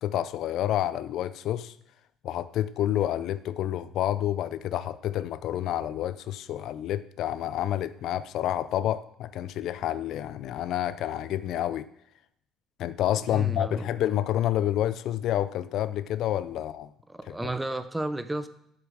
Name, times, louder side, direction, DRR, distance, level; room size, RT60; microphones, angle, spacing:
voice 1, 0.0-1.7 2.2-11.9 12.8-16.9 17.3-17.5, left 12 dB, 65° left, 0.5 m, -29 dB
voice 2, 13.3-13.9 17.1-18.5, right 2 dB, 10° right, 0.7 m, -32 dB
8.1 x 6.9 x 7.2 m
cardioid pair, 120°, 0 cm